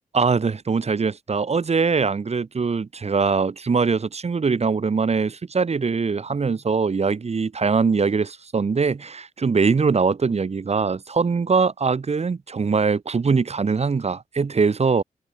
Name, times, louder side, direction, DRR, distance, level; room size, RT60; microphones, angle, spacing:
voice 1, 0.1-15.0, right 5 dB, 50° right, 2.4 m, -22 dB
cardioid pair, 85°, 15 cm